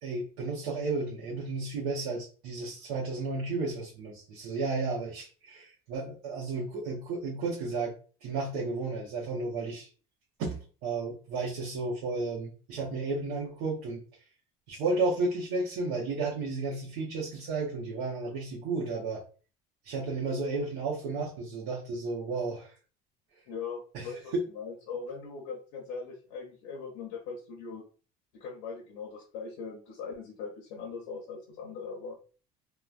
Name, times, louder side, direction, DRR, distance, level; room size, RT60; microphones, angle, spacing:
voice 1, 0.0-7.9 8.2-9.9 10.4-14.0 14.7-19.2 19.8-22.7 23.9-24.4, right 3 dB, 80° right, -5 dB, 0.9 m, -33 dB
voice 2, 23.5-27.8 28.3-32.2, left 5 dB, 90° left, -2 dB, 0.8 m, -40 dB
3.0 x 2.2 x 2.4 m, 0.38 s
cardioid pair, 130°, 15 cm